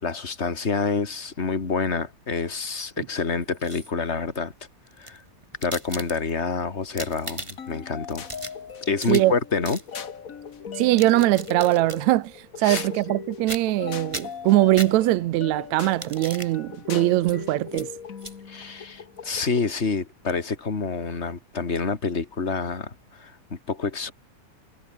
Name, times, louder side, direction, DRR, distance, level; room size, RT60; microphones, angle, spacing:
voice 1, 0.0-4.5 5.0-5.2 5.6-8.3 8.8-9.8 12.6-12.9 18.5-24.1, left 4 dB, 20° left, 2.1 m, -28 dB
sound 1, 3.4-4.1 4.9-6.5 6.8-7.8 8.1-9.4 9.6-9.9 10.7-12.0 12.7-13.2 13.5-13.8 14.1-15.3 15.8-16.5 17.2-17.4 17.7-17.9 18.2-18.3, right 1 dB, 10° right, 2.9 m, -38 dB
sound 2, 7.6-19.7, left 6 dB, 85° left, 0.7 m, -39 dB
voice 2, 10.8-12.3 12.6-17.9, right 16 dB, 75° right, 1.7 m, -21 dB
omnidirectional pair, 3.9 m